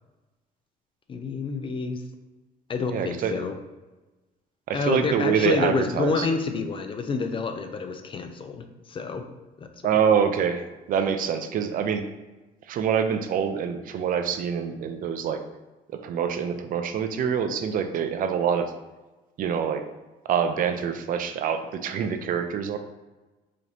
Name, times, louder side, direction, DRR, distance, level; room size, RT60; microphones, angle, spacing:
voice 1, 1.1-2.0 2.7-3.5 4.7-9.2 9.6-9.7, left 4 dB, 30° left, 6 dB, 0.4 m, -28 dB
voice 2, 2.9-3.3 4.7-6.3 9.8-12.0 12.7-15.4 15.9-18.7 19.4-19.8 20.3-22.8, right 7 dB, 55° right, 8 dB, 0.4 m, -25 dB
4.9 x 2.6 x 2.9 m, 1.1 s
cardioid pair, 110°, 17 cm